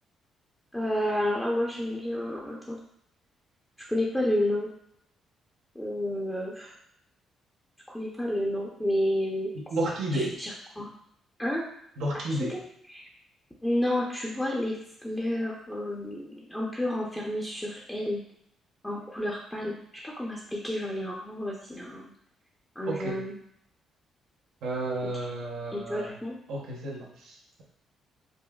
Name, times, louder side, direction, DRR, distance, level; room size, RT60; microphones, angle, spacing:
voice 1, 0.7-2.8 3.9-4.7 5.8-6.7 7.9-9.5 10.1-10.5 10.8-10.9 11.4-11.6 12.1-12.6 12.9-13.0 13.6-18.2 18.8-19.8 20.0-22.0 22.8-23.4 25.7-26.4, left 1 dB, 10° left, -3 dB, 0.6 m, -30 dB
voice 2, 9.7-10.3 12.0-12.6 22.9-23.2 24.6-26.1 26.5-27.6, right 1 dB, 85° right, -3 dB, 0.8 m, -32 dB
5.1 x 2.1 x 2.3 m, 0.71 s
cardioid pair, 90°, 0 cm